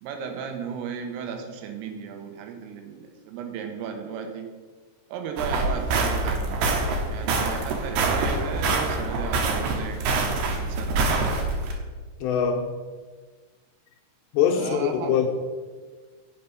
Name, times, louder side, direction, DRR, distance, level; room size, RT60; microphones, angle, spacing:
voice 1, 0.0-4.5 5.1-6.6 7.1-11.3 14.5-15.3, right 6 dB, 90° right, 3.8 m, -35 dB
sound 1, 5.4-11.7, right 3 dB, 70° right, 2.8 m, -25 dB
voice 2, 12.2-12.7 14.3-15.3, left 8 dB, 80° left, 2.6 m, -23 dB
8.6 x 7.6 x 5.8 m
omnidirectional pair, 5.7 m